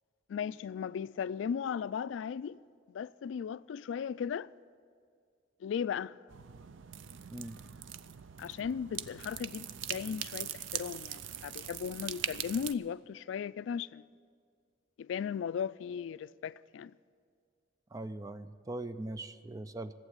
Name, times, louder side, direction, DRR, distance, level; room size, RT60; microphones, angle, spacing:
voice 1, 0.3-2.6 2.9-4.5 5.6-6.1 8.4-14.0 15.0-16.9, left 7 dB, 75° left, 0.3 m, -36 dB
sound 1, 6.3-12.7, right 10 dB, 90° right, 0.5 m, -41 dB
voice 2, 17.9-19.9, right 2 dB, 20° right, 0.4 m, -41 dB
14.5 x 8.1 x 9.8 m
head